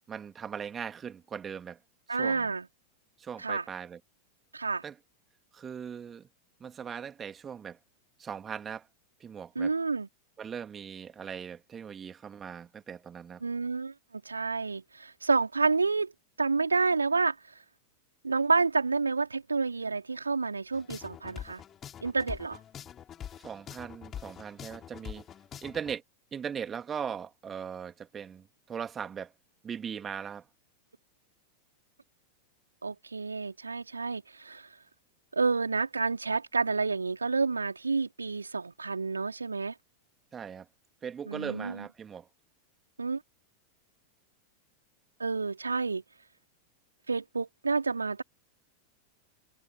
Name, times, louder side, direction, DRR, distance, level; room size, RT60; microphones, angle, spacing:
voice 1, 0.1-1.8 2.1-2.5 3.2-4.0 4.8-5.0 5.5-6.3 6.6-7.8 8.2-8.9 9.2-9.7 10.4-13.4 23.4-25.3 25.6-26.0 26.3-29.3 29.6-30.5 40.3-40.7 41.0-42.3, right 7 dB, 20° right, 2.5 m, -39 dB
voice 2, 2.1-2.7 3.4-3.6 4.5-4.8 9.6-10.1 13.4-16.1 16.4-17.4 18.2-21.6 22.0-22.6 32.8-34.7 35.3-39.7 41.3-41.8 43.0-43.2 45.2-46.0 47.1-48.2, right 4 dB, 80° right, 4.3 m, -29 dB
sound 1, 20.7-26.0, left 9 dB, 25° left, 5.3 m, -44 dB
figure-of-eight pair, 90°, 0 cm